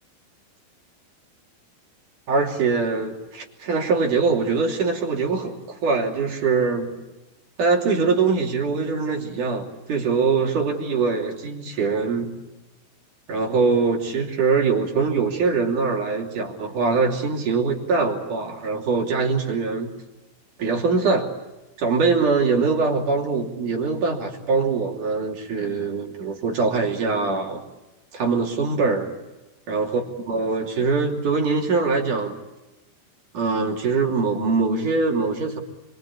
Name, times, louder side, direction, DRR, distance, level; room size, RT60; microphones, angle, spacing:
voice 1, 2.3-6.9 7.6-12.3 13.3-19.9 20.6-21.3 21.8-27.6 28.1-29.1 29.7-30.0 30.3-32.3 33.3-35.6, right 4 dB, 50° right, 1 dB, 4.2 m, -23 dB
28.0 x 24.5 x 8.6 m, 1.1 s
omnidirectional pair, 4.8 m